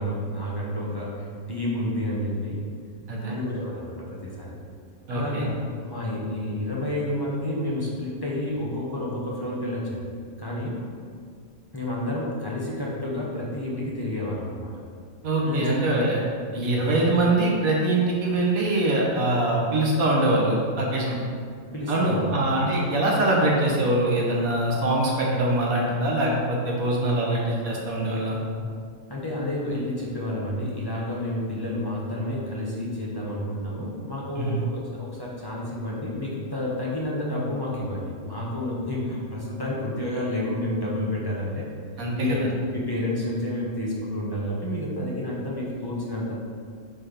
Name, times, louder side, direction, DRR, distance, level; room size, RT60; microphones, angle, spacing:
voice 1, 0.0-2.6 3.2-4.5 5.1-5.5 5.8-10.1 10.4-10.8 11.7-14.7 15.4-16.0 16.7-16.9 21.0-21.2 21.7-22.3 22.6-22.7 29.1-41.7 41.9-46.3, left 1 dB, 20° left, -5 dB, 0.8 m, -30 dB
voice 2, 5.1-5.5 15.2-16.2 16.5-21.2 21.9-28.4 34.4-34.6 42.0-42.4, right 1 dB, 85° right, -3 dB, 1.4 m, -23 dB
4.4 x 4.3 x 5.1 m, 2.1 s
omnidirectional pair, 1.4 m